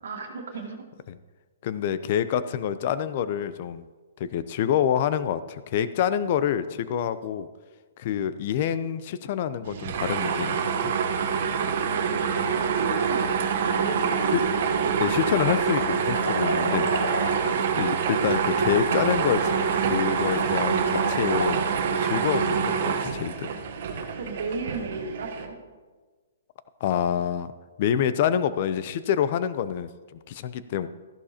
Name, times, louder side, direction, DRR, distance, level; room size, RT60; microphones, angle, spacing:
voice 1, 0.0-0.8 11.6-14.2 14.7-14.9 23.5-23.6 24.1-25.6, right 4 dB, 75° right, 2 dB, 1.8 m, -35 dB
voice 2, 1.6-3.9 4.2-7.5 8.0-10.9 14.3-14.4 15.0-16.9 17.7-19.6 19.9-21.6 22.0-23.5 26.8-27.5 27.8-30.9, left 9 dB, 45° left, 14 dB, 0.6 m, -27 dB
sound 1, 9.7-25.5, right 6 dB, 55° right, 1.0 m, -26 dB
sound 2, 14.1-14.9 15.2-22.0, left 2 dB, 85° left, 2.5 m, -35 dB
13.5 x 11.5 x 2.9 m, 1.4 s
hypercardioid pair, 150°, 0 cm